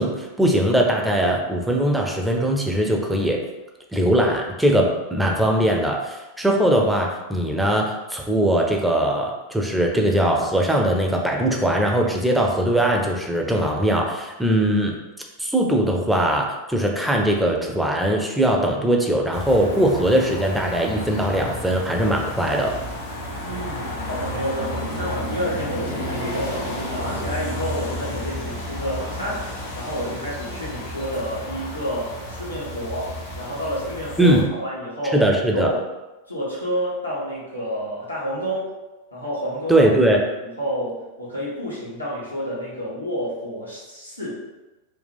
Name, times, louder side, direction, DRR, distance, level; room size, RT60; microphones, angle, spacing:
voice 1, 0.0-3.4 3.9-14.9 15.4-22.7 34.2-34.4 35.1-35.7 39.7-40.2, right 1 dB, 5° right, 0 dB, 0.6 m, -20 dB
sound 1, 19.3-34.4, left 1 dB, 60° left, 1.1 m, -32 dB
voice 2, 23.4-35.8 36.3-38.7 39.1-39.9 40.4-44.3, equal, 85° left, -7 dB, 1.2 m, -29 dB
4.2 x 2.3 x 3.3 m, 1.1 s
figure-of-eight pair, 90°, 0 cm